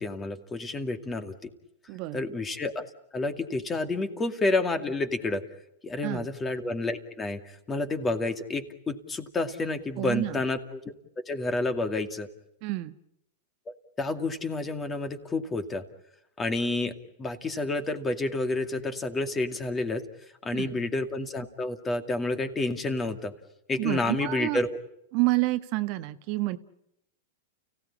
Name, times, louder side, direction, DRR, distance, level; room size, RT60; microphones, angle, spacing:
voice 1, 0.0-1.5 2.1-2.9 3.1-5.4 5.8-10.8 11.2-12.3 13.7-15.8 16.4-16.9 17.2-20.0 20.4-23.3 23.7-24.8, left 2 dB, 15° left, 8 dB, 2.3 m, -29 dB
voice 2, 1.9-2.3 6.0-6.3 10.0-10.4 12.6-12.9 20.5-20.8 23.8-24.6 25.1-26.6, right 20 dB, 50° right, 10 dB, 1.2 m, -29 dB
30.0 x 17.0 x 10.0 m, 0.85 s
hypercardioid pair, 130°, 0 cm